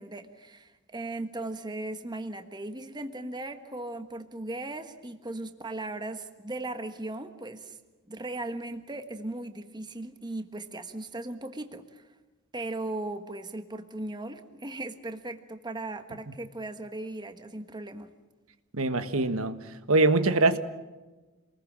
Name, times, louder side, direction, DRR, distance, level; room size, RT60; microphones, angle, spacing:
voice 1, 0.0-7.8 8.1-12.0 12.5-18.1, right 2 dB, 20° right, 1.4 m, -37 dB
voice 2, 18.7-19.6 19.9-20.6, right 3 dB, 75° right, 1.5 m, -23 dB
27.5 x 20.5 x 7.5 m
head